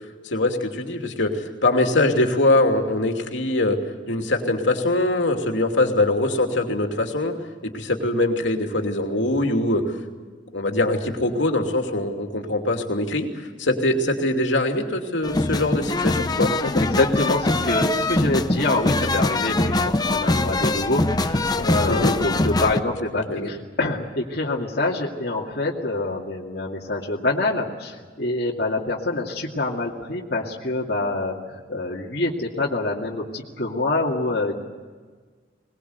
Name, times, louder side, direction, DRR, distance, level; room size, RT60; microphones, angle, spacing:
voice 1, 0.2-3.8 4.1-7.3 7.6-9.8 10.5-13.3 13.6-16.5 21.9-22.1 23.3-23.5, left 2 dB, 75° left, 3 dB, 2.8 m, -22 dB
sound 1, 15.2-22.8, left 2 dB, 20° left, 0.8 m, -23 dB
voice 2, 16.6-34.6, left 2 dB, 60° left, -3 dB, 2.4 m, -26 dB
22.0 x 21.0 x 8.1 m, 1.5 s
head